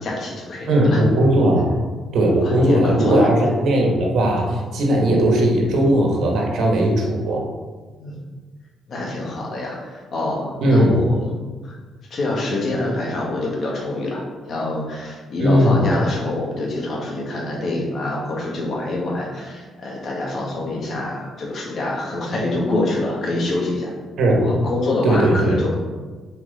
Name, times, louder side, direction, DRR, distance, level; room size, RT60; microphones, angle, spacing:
voice 1, 0.0-1.0 2.4-3.3 4.9-5.1 8.0-8.2 8.9-11.3 11.6-11.8 12.1-14.2 14.5-23.9 24.4-25.7, left 2 dB, 55° left, -2 dB, 1.8 m, -26 dB
voice 2, 0.7-1.7 2.1-7.4 10.6-11.0 15.4-15.8 24.2-24.5 25.0-25.6, right 1 dB, 70° right, 0 dB, 1.5 m, -17 dB
6.1 x 4.6 x 4.2 m, 1.4 s
cardioid pair, 90°, 0 cm